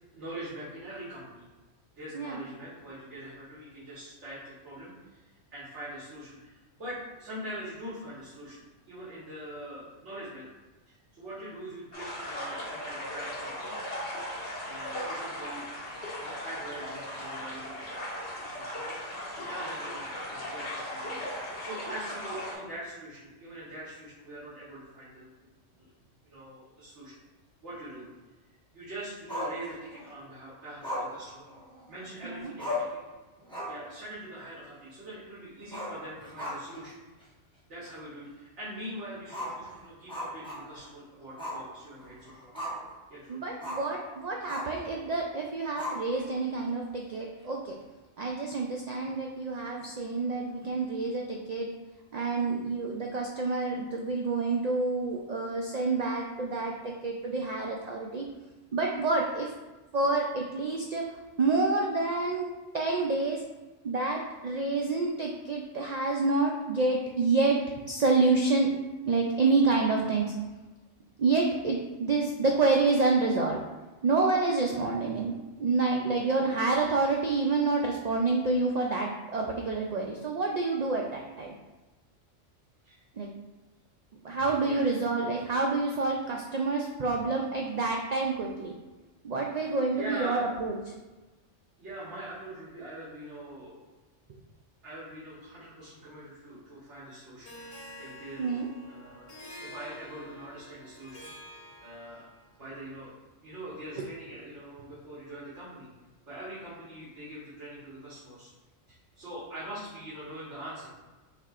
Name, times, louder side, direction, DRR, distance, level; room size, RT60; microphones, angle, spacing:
voice 1, 0.1-1.5 1.9-10.5 10.9-13.7 14.6-15.7 16.2-25.5 25.8-25.9 26.2-27.1 27.6-28.1 28.7-31.4 31.9-33.0 33.7-37.0 37.7-42.5 43.1-43.4 82.8-83.0 84.6-84.9 89.9-90.5 91.8-93.8 94.8-97.6 98.0-101.4 101.8-102.3 102.5-105.9 106.3-108.5 108.9-110.9, right 1 dB, 70° right, -10 dB, 1.5 m, -43 dB
sound 1, 11.9-22.5, left 1 dB, 65° left, 1.7 m, -37 dB
Growling, 29.3-30.1 30.8-32.1 32.3-32.4 32.6-33.0 33.4-33.9 34.2-34.3 35.6-36.9 37.2-37.3 37.9-38.0 39.3-40.9 41.4-41.7 42.0-42.9 43.6-43.9 44.5-44.8 45.8-46.4, left 1 dB, 5° left, 1.2 m, -36 dB
voice 2, 43.3-47.8 48.2-51.7 52.1-58.3 58.7-59.5 59.9-61.1 61.4-62.4 62.7-63.4 63.8-68.7 69.1-70.3 71.2-73.6 74.0-81.5 83.2-83.3 84.2-88.7 89.2-90.7 98.4-98.7, right 3 dB, 90° right, 0 dB, 0.3 m, -28 dB
Harp, 97.4-102.5, equal, 35° left, 0.9 m, -48 dB
6.8 x 2.8 x 2.4 m, 1.2 s
omnidirectional pair, 1.3 m